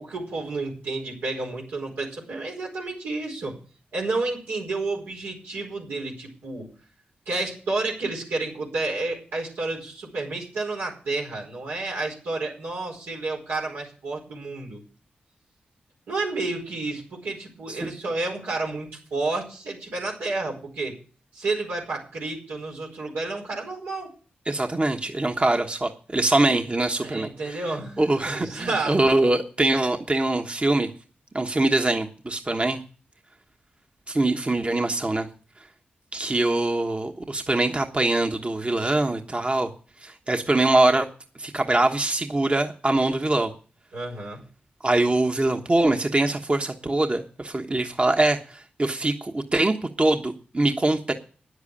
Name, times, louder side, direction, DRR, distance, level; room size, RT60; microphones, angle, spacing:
voice 1, 0.0-3.6 3.9-6.7 7.3-14.8 16.1-21.0 21.3-24.1 27.0-29.0 43.9-44.4, right 3 dB, 90° right, -2 dB, 4.6 m, -30 dB
voice 2, 24.5-27.6 28.0-30.9 31.3-32.8 34.1-35.3 36.1-39.7 40.0-41.1 41.4-43.5 44.8-51.1, right 2 dB, 30° right, 4 dB, 1.2 m, -23 dB
9.9 x 8.1 x 8.6 m, 0.39 s
supercardioid pair, 40°, 4 cm